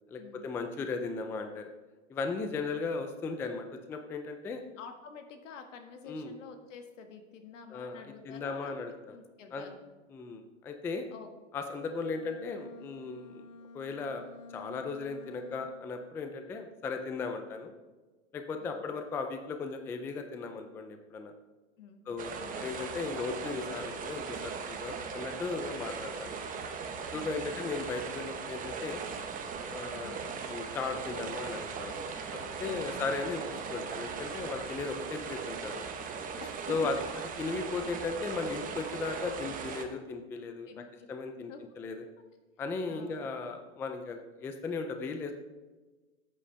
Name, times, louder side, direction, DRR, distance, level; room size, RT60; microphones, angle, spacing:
voice 1, 0.1-1.7 2.1-4.6 6.1-6.3 7.7-9.1 9.5-9.6 10.1-11.0 11.5-13.4 13.7-14.2 14.5-17.7 18.3-21.3 22.1-26.3 27.1-29.0 29.7-30.2 30.5-35.9 36.7-37.0 37.4-41.5 41.8-42.0 42.6-45.3, left 4 dB, 5° left, 6 dB, 0.3 m, -37 dB
voice 2, 4.5-8.8 9.1-9.8 11.1-11.3 18.6-18.8 21.8-22.1 22.4-22.6 27.1-27.4 30.0-30.3 32.7-33.1 36.4-36.9 40.7-41.1 41.4-41.6 42.9-43.2, left 6 dB, 75° left, 5 dB, 1.7 m, -48 dB
Bowed string instrument, 11.9-16.0, left 3 dB, 40° left, 0.9 m, -51 dB
sound 1, 22.2-39.9, right 5 dB, 20° right, 1.0 m, -39 dB
13.5 x 8.5 x 3.3 m, 1.3 s
hypercardioid pair, 135°, 38 cm